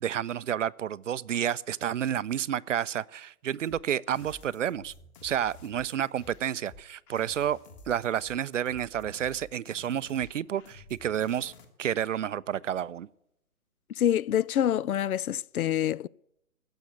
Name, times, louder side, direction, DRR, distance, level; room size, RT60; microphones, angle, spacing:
voice 1, 0.0-4.9 5.2-7.6 7.9-11.5 11.8-13.1, right 10 dB, 55° right, 0.5 m, -30 dB
sound 1, 3.7-11.6, left 3 dB, 20° left, 1.4 m, -52 dB
voice 2, 14.0-16.1, left 10 dB, 75° left, 0.5 m, -26 dB
15.5 x 7.1 x 9.5 m
hypercardioid pair, 150°, 45 cm